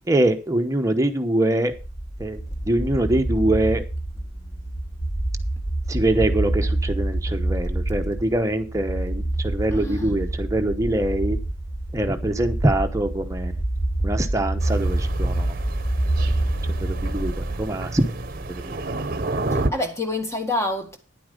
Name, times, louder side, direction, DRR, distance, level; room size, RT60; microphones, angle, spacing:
voice 1, 0.1-1.7 2.2-2.4 2.7-3.8 5.9-11.4 11.9-13.5 14.0-15.5 16.8-17.3 17.6-18.1 19.3-19.4, right 1 dB, 15° right, 1.0 m, -23 dB
sound 1, 1.7-17.6, right 1 dB, 60° left, 5.9 m, -27 dB
voice 2, 9.7-10.2 19.5-21.0, left 2 dB, 15° left, 1.8 m, -27 dB
Thunder, 14.6-19.7, right 2 dB, 50° right, 0.9 m, -30 dB
10.0 x 8.6 x 5.3 m
head